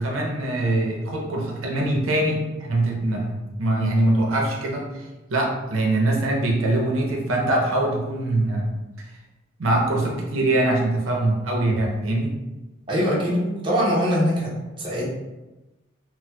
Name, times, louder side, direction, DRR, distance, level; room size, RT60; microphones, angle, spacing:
voice 1, 0.0-4.9 5.3-8.7 9.6-12.3, right 1 dB, 85° right, -1 dB, 0.6 m, -23 dB
voice 2, 12.9-15.1, equal, 25° right, -6 dB, 0.6 m, -23 dB
4.2 x 2.1 x 2.2 m, 1.1 s
head